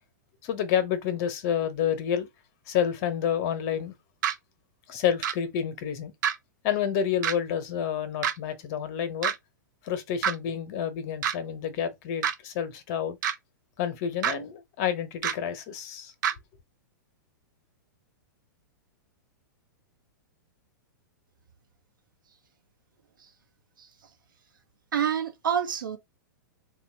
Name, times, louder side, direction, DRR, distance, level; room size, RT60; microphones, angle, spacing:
voice 1, 0.4-2.3 2.7-3.9 4.9-6.1 6.6-9.3 9.8-13.2 13.8-16.1, left 9 dB, 50° left, 1.1 m, -29 dB
sound 1, 4.2-4.3 5.2-5.3 6.2-6.4 7.2-7.4 8.2-8.3 9.2-9.4 10.2-10.4 11.2-11.3 12.2-12.3 13.2-13.4 14.2-14.3 15.2-15.3 16.2-16.3, right 9 dB, 65° right, 0.8 m, -26 dB
voice 2, 24.9-26.0, right 8 dB, 80° right, 1.1 m, -27 dB
3.5 x 2.5 x 4.5 m
hypercardioid pair, 115°, 11 cm